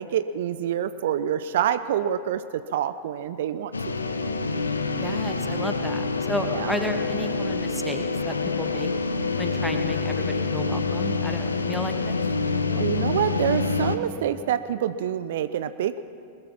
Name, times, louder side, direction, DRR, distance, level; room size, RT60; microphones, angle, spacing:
voice 1, 0.0-3.7 6.5-6.7 12.7-16.0, right 10 dB, 55° right, 13 dB, 0.6 m, -26 dB
sound 1, 3.7-14.0, left 4 dB, 75° left, 1.2 m, -26 dB
voice 2, 5.0-8.9 9.4-12.2, left 1 dB, ahead, 5 dB, 1.8 m, -33 dB
21.0 x 21.0 x 5.9 m, 2.7 s
figure-of-eight pair, 90°, 0 cm